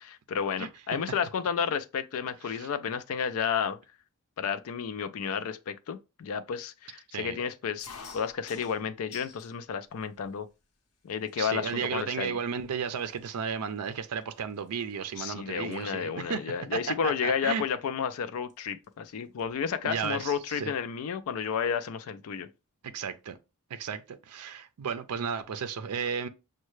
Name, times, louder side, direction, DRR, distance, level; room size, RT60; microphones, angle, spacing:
voice 1, 0.0-3.8 4.4-10.5 11.0-12.4 15.2-22.5, left 7 dB, 65° left, 0.4 m, -32 dB
sound 1, 7.8-9.5 10.0-10.6 11.3-11.4 11.6-12.0 12.7-12.8 13.0-15.2 15.5-15.8 17.2-17.4 18.5-18.6 18.8-18.9 19.2-20.1, left 5 dB, 85° left, 0.8 m, -49 dB
voice 2, 11.4-17.6 19.8-20.7 22.8-23.4 23.7-26.3, right 6 dB, 90° right, 0.4 m, -34 dB
6.3 x 2.2 x 3.1 m
head